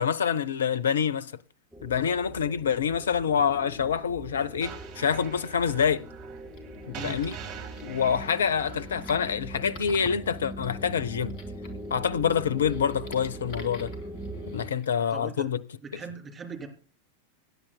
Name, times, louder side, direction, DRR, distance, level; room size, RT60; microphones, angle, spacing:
voice 1, 0.0-1.3 1.8-6.0 6.9-7.4 7.8-11.3 11.9-13.9 14.5-15.6, left 7 dB, 65° left, 0.5 m, -26 dB
sound 1, 1.7-14.7, right 1 dB, ahead, 4.1 m, -41 dB
sound 2, 4.6-9.6, right 9 dB, 40° right, 1.7 m, -45 dB
sound 3, 6.4-14.9, left 4 dB, 45° left, 2.6 m, -50 dB
voice 2, 6.9-7.2 15.1-15.5 15.8-16.7, right 4 dB, 20° right, 3.4 m, -40 dB
24.5 x 10.0 x 2.2 m
figure-of-eight pair, 90°, 0 cm